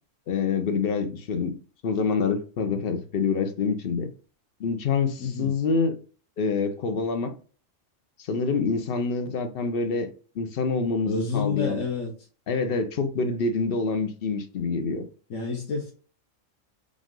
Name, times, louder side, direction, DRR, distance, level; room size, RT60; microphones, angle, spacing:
voice 1, 0.3-1.5 1.8-4.1 4.6-5.9 6.4-7.3 8.2-10.1 10.4-11.8 12.5-15.1, left 4 dB, 55° left, 0.8 m, -26 dB
voice 2, 5.2-5.6 11.0-12.1 15.3-15.9, left 4 dB, 85° left, 1.3 m, -29 dB
5.3 x 2.5 x 3.7 m
omnidirectional pair, 1.3 m